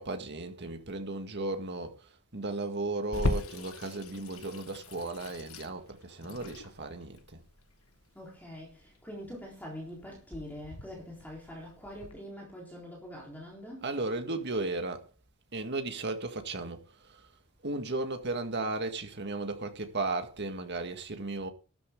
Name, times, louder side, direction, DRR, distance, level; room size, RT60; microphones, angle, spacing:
voice 1, 0.0-7.4 13.8-15.1 15.5-17.3 17.6-21.5, right 2 dB, 55° right, 1.8 m, -35 dB
Water tap faucet / Sink (filling or washing), 3.1-12.1, left 2 dB, 80° left, 1.4 m, -39 dB
voice 2, 8.1-14.0, equal, 10° left, 4.0 m, -44 dB
12.5 x 12.5 x 3.8 m
head